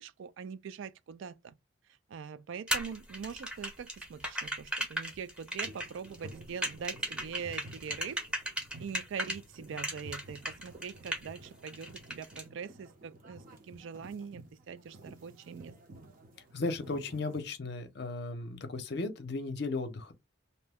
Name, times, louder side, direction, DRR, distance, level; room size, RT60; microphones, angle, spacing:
voice 1, 0.0-1.5 2.1-8.2 8.8-15.7, right 6 dB, 65° right, 0.3 m, -43 dB
sound 1, 2.7-9.4 9.8-11.4 11.7-12.4, equal, 5° right, 0.7 m, -35 dB
sound 2, 5.5-17.4, right 1 dB, 40° right, 0.7 m, -52 dB
voice 2, 16.5-20.1, left 3 dB, 55° left, 0.6 m, -35 dB
2.7 x 2.1 x 3.4 m
head